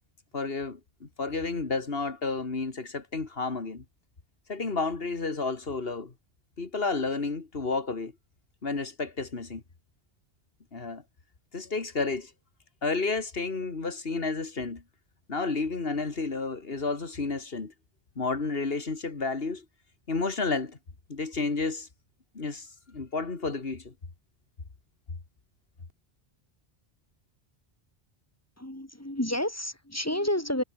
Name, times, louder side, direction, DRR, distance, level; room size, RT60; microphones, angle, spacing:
voice 1, 0.3-3.8 4.5-6.1 6.6-8.1 8.6-9.6 10.7-11.0 11.5-12.3 12.8-14.8 15.3-17.7 18.2-19.6 20.1-20.8 21.1-21.9 22.3-23.9, left 3 dB, 60° left, 2.5 m, -31 dB
voice 2, 28.6-30.6, left 1 dB, 15° left, 2.6 m, -30 dB
omnidirectional pair, 1.1 m